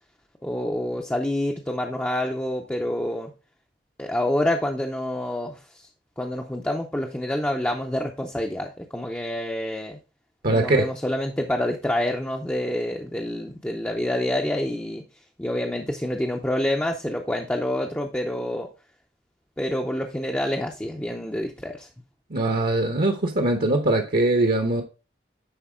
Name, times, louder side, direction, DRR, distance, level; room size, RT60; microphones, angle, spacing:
voice 1, 0.4-3.3 4.0-5.9 6.2-10.0 10.5-15.0 15.4-18.7 19.6-21.9, left 1 dB, 10° left, 0.6 m, -27 dB
voice 2, 10.4-10.9 22.3-24.8, right 2 dB, 55° right, 0.9 m, -21 dB
10.0 x 4.0 x 3.6 m
head